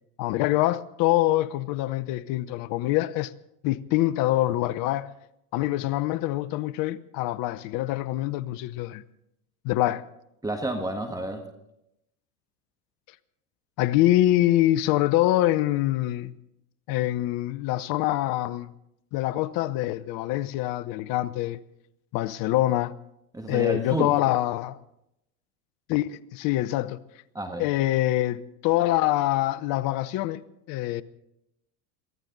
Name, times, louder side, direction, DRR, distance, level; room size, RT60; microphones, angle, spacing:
voice 1, 0.2-3.3 3.6-5.1 5.5-9.0 9.6-10.0 13.8-16.3 16.9-18.7 19.1-21.6 22.1-22.9 23.5-24.8 25.9-27.0 27.6-31.0, left 15 dB, 45° left, 0.8 m, -25 dB
voice 2, 10.4-11.5 23.3-24.2 27.3-27.7, right 2 dB, 10° right, 1.6 m, -30 dB
23.0 x 14.5 x 4.0 m
hypercardioid pair, 105°, 47 cm